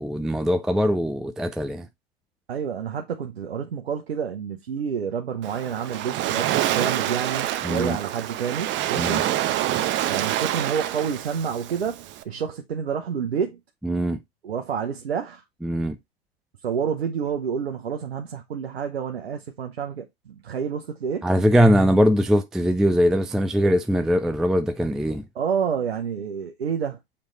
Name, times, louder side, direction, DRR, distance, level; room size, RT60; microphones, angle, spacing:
voice 1, 0.0-1.9 7.6-8.0 9.0-9.3 13.8-14.2 15.6-16.0 21.2-25.3, equal, ahead, 0.4 m, -21 dB
voice 2, 2.5-9.2 10.0-13.6 14.4-15.4 16.6-21.3 25.3-27.0, right 7 dB, 90° right, 1.0 m, -29 dB
Waves surf, 5.4-12.2, right 13 dB, 40° right, 1.0 m, -27 dB
7.1 x 3.4 x 3.9 m
hypercardioid pair, 100°, 30 cm